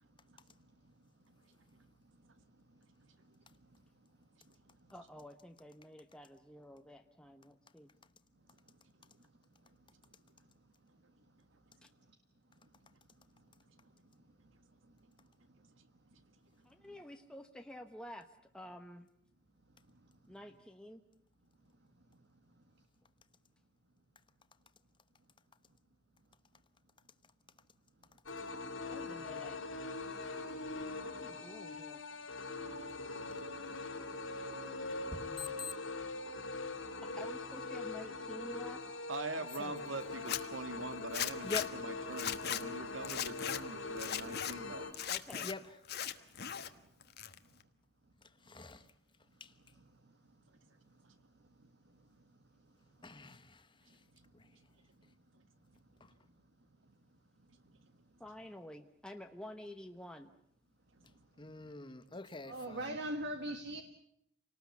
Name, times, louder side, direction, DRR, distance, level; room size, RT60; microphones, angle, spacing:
voice 1, 4.9-7.9 11.8-11.9 16.6-18.3 18.5-19.1 20.3-21.0 28.9-29.6 31.0-32.0 37.0-39.0 43.9-44.0 45.1-45.5 58.2-60.3 63.5-63.6, equal, 5° left, 5 dB, 1.0 m, -50 dB
sound 1, 28.3-44.9, left 3 dB, 85° left, 3.5 m, -42 dB
voice 2, 35.1-35.7 39.6-39.7 41.4-41.7 45.4-45.6 48.4-48.9 49.4-49.5 53.0-53.7 54.3-54.5 56.0-56.1 61.4-63.0, left 3 dB, 25° left, 12 dB, 1.1 m, -44 dB
voice 3, 39.1-44.9, right 3 dB, 75° right, 9 dB, 2.0 m, -43 dB
Zipper (clothing), 40.1-40.4 41.1-41.7 42.1-42.6 43.0-43.6 44.0-44.5 44.9-45.5 45.9-46.7 47.0-47.6, left 10 dB, 55° left, 1.3 m, -38 dB
voice 4, 50.9-52.1 54.2-54.3 61.0-61.1 61.6-61.7 62.5-63.8, right 1 dB, 60° right, 6 dB, 1.7 m, -44 dB
28.5 x 19.0 x 8.3 m, 0.70 s
head